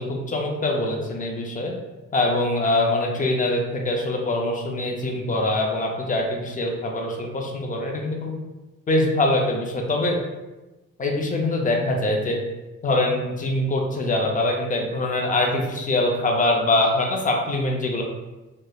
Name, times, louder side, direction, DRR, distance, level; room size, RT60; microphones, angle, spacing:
voice 1, 0.0-1.7 2.1-8.3 8.9-10.2 11.0-12.4 12.8-18.0, left 2 dB, 25° left, 0 dB, 0.5 m, -23 dB
2.9 x 2.1 x 2.3 m, 1.1 s
cardioid pair, 90°, 30 cm